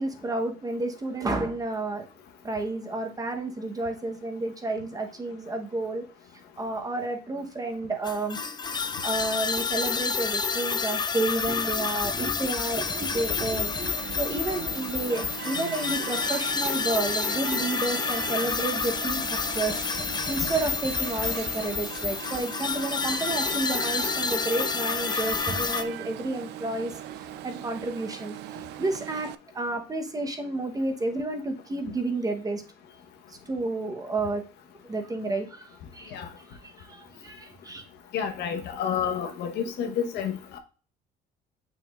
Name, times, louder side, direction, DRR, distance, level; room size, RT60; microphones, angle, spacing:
voice 1, 0.0-2.1 2.4-6.0 6.6-8.4 9.0-26.9 27.2-28.4 28.8-32.6 33.3-34.4 34.8-36.2 36.5-37.8, right 2 dB, 20° right, 5 dB, 1.1 m, -31 dB
sound 1, 8.0-25.8, left 5 dB, 25° left, 0.6 m, -29 dB
Alarm, 12.7-29.4, right 14 dB, 80° right, 0.4 m, -39 dB
voice 2, 38.1-40.6, left 8 dB, 80° left, 5 dB, 1.2 m, -29 dB
7.0 x 6.1 x 2.5 m, 0.35 s
cardioid pair, 110°, 17 cm